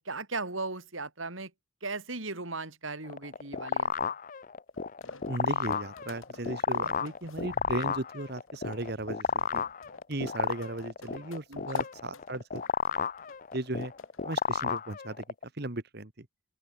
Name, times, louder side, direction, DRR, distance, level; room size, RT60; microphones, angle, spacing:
voice 1, 0.0-1.5 1.8-3.9 11.5-11.8, right 3 dB, 75° right, 4.4 m, -37 dB
sound 1, 3.0-15.4, left 6 dB, 40° left, 0.5 m, -32 dB
sound 2, 4.7-14.8, left 3 dB, 85° left, 4.9 m, -54 dB
voice 2, 5.3-9.2 9.5-9.6 10.1-12.6 13.5-13.9 14.2-15.2 15.6-16.2, right 2 dB, 50° right, 1.6 m, -36 dB
open air
head